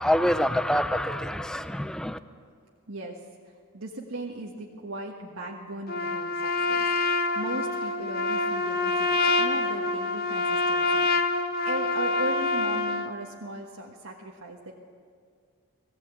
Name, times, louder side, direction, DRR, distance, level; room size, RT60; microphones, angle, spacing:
voice 1, 0.0-2.2, equal, 5° left, 11 dB, 0.4 m, -26 dB
voice 2, 2.9-3.2 3.5-11.3 11.6-14.8, right 1 dB, 85° right, -2 dB, 1.5 m, -38 dB
Trumpet, 5.9-13.1, left 3 dB, 45° left, 0.8 m, -26 dB
20.5 x 16.0 x 8.2 m, 2.2 s
head